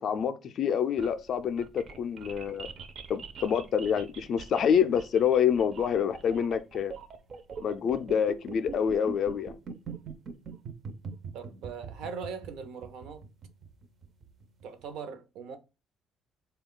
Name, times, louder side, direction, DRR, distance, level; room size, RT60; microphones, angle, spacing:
voice 1, 0.0-2.7 3.1-6.9 7.6-9.6, left 7 dB, 45° left, 0.3 m, -27 dB
sound 1, 0.7-14.9, right 5 dB, 40° right, 0.4 m, -43 dB
voice 2, 11.3-13.2 14.6-15.6, right 6 dB, 80° right, 0.6 m, -40 dB
3.8 x 2.3 x 3.6 m
cardioid pair, 170°, 0 cm